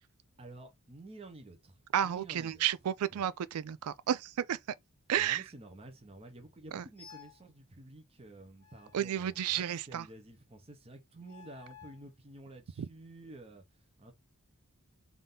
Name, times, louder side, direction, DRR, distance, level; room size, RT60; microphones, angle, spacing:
voice 1, 0.4-2.6 3.1-3.3 5.2-14.1, right 2 dB, 25° right, 0.9 m, -51 dB
voice 2, 1.9-4.6 5.1-5.4 6.7-6.8 8.9-10.1 12.8-12.9, right 10 dB, 85° right, 0.4 m, -32 dB
sound 1, 7.0-7.5 8.6-9.9 11.2-12.1, left 8 dB, 90° left, 0.9 m, -55 dB
3.6 x 2.7 x 3.7 m
head